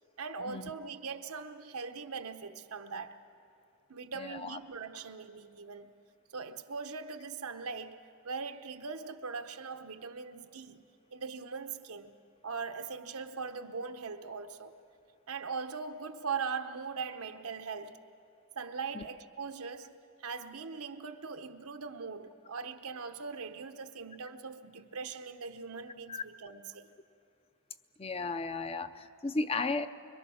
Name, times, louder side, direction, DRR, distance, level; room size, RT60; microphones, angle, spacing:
voice 1, 0.2-3.2 3.9-5.9 6.3-12.2 12.4-14.8 15.3-18.0 18.5-26.9, right 5 dB, 90° right, 1.0 m, -41 dB
voice 2, 4.2-4.6 18.9-19.0 26.1-26.2 28.0-29.9, left 3 dB, 25° left, 0.5 m, -34 dB
25.5 x 23.0 x 6.3 m
head